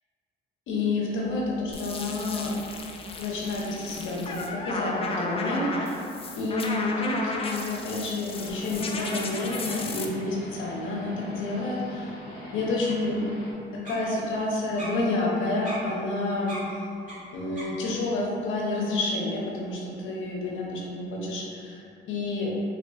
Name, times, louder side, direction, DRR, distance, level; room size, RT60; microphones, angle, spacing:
voice 1, 0.7-2.5 3.2-6.0 6.4-12.1 12.5-13.2 13.7-16.6 17.3-22.6, left 2 dB, 80° left, -3 dB, 0.7 m, -29 dB
sound 1, 1.2-18.2, equal, 45° right, 1.3 m, -47 dB
sound 2, 1.7-10.1, left 3 dB, 30° left, 0.3 m, -34 dB
sound 3, 8.3-13.5, equal, 60° left, 1.0 m, -42 dB
3.6 x 2.5 x 2.3 m, 2.5 s
cardioid pair, 90°, 20 cm